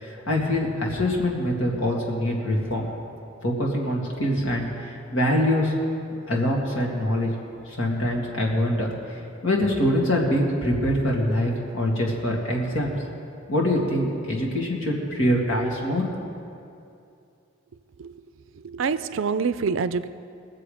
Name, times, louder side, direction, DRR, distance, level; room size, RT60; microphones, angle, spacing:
voice 1, 0.0-2.9 3.4-5.7 6.3-7.3 7.7-12.9 13.5-16.0, left 1 dB, 60° left, -1 dB, 2.3 m, -24 dB
voice 2, 18.6-20.1, right 5 dB, 65° right, 13 dB, 0.4 m, -26 dB
21.5 x 7.6 x 5.1 m, 2.6 s
head